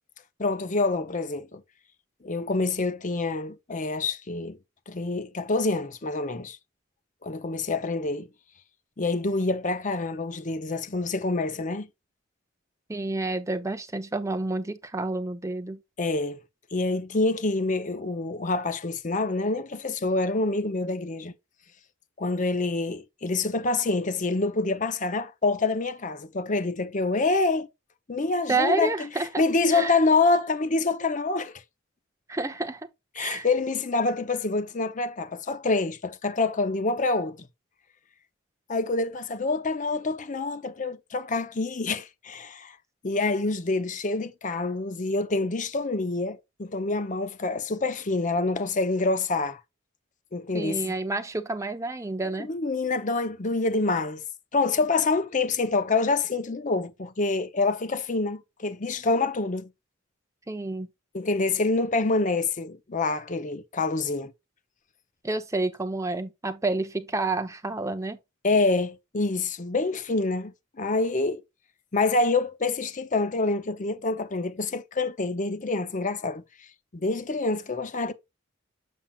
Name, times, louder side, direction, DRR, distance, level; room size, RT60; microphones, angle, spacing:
voice 1, 0.4-1.6 2.2-4.6 4.9-6.6 7.2-8.3 9.0-11.9 16.0-16.4 16.7-21.3 22.2-27.7 28.1-29.1 29.4-31.6 33.2-37.5 38.7-42.8 43.0-49.6 50.3-50.9 52.4-54.2 54.5-59.7 61.1-64.3 68.4-71.4 71.9-76.4 76.9-78.1, left 3 dB, 40° left, 0.7 m, -26 dB
voice 2, 12.9-15.8 28.5-29.4 29.7-30.0 32.3-32.9 33.2-33.5 50.5-52.5 60.5-60.9 65.2-68.2, right 2 dB, 15° right, 0.7 m, -29 dB
7.3 x 7.2 x 2.3 m
head